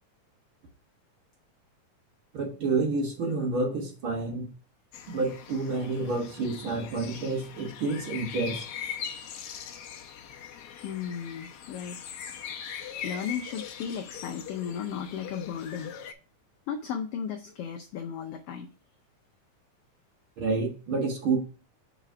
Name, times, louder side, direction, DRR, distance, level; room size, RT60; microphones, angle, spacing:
voice 1, 2.3-4.5 5.1-8.6 20.4-21.4, right 3 dB, 50° right, 1 dB, 1.9 m, -29 dB
sound 1, 4.9-16.1, left 8 dB, 70° left, 1.4 m, -41 dB
voice 2, 10.8-12.0 12.5-15.9 16.7-18.7, left 7 dB, 90° left, 4 dB, 1.3 m, -35 dB
6.2 x 4.0 x 5.6 m, 0.36 s
omnidirectional pair, 3.4 m